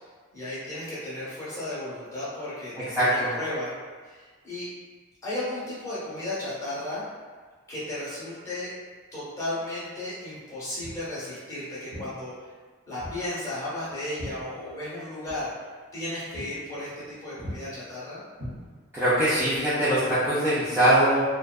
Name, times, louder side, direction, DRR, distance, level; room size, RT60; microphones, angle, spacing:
voice 1, 0.3-3.7 4.0-4.7 5.2-7.0 7.7-8.7 9.1-12.5 12.9-15.5 15.9-18.2, left 1 dB, 15° left, -10 dB, 0.8 m, -34 dB
voice 2, 3.0-3.3 18.9-21.2, right 1 dB, 10° right, -12 dB, 0.4 m, -22 dB
Walk footsteps, 10.8-11.1 11.9-12.1 13.0-13.2 13.5-15.0 15.2-15.4 15.9-16.0 16.3-16.5 16.8-17.1 17.4-17.6 18.3-19.0, equal, 65° right, 0.9 m, -39 dB
2.5 x 2.1 x 2.3 m, 1.5 s
head